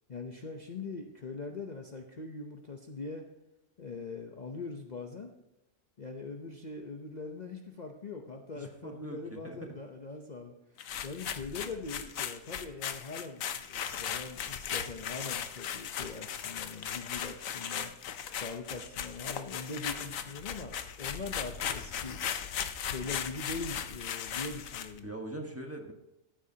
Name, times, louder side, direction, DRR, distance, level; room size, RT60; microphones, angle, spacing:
voice 1, 0.1-3.2 3.8-5.3 6.0-10.5 11.0-17.9 18.3-22.2 22.9-25.1, left 3 dB, 40° left, 3 dB, 0.8 m, -42 dB
voice 2, 8.6-9.8 25.0-25.9, right 2 dB, 10° right, 2 dB, 1.3 m, -42 dB
sound 1, 10.8-25.0, left 8 dB, 85° left, 1.2 m, -37 dB
14.5 x 8.7 x 2.8 m, 0.95 s
omnidirectional pair, 1.4 m